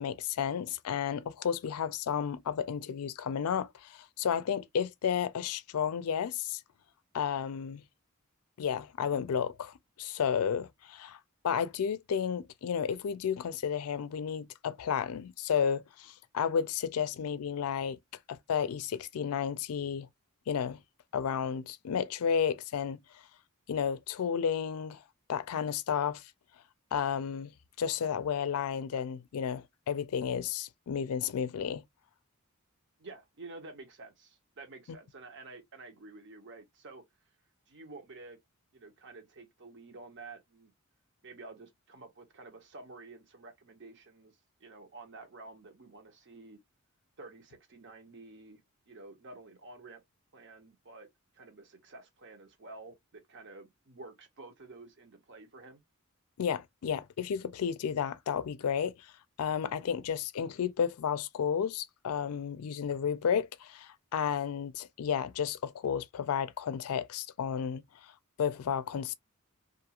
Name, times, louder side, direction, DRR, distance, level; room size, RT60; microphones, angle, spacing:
voice 1, 0.0-6.6 7.1-7.8 8.6-11.2 11.4-18.0 18.3-20.1 20.5-20.8 21.1-23.0 23.7-25.0 25.3-26.3 26.9-27.5 27.8-31.8 56.4-58.9 59.4-67.8 68.4-69.1, left 7 dB, 75° left, 0.4 m, -32 dB
voice 2, 33.0-37.0 37.7-38.4 38.7-40.7 41.2-44.3 44.6-46.6 47.2-50.0 50.3-51.1 51.3-55.8, right 3 dB, 55° right, 0.9 m, -50 dB
2.5 x 2.4 x 2.9 m
head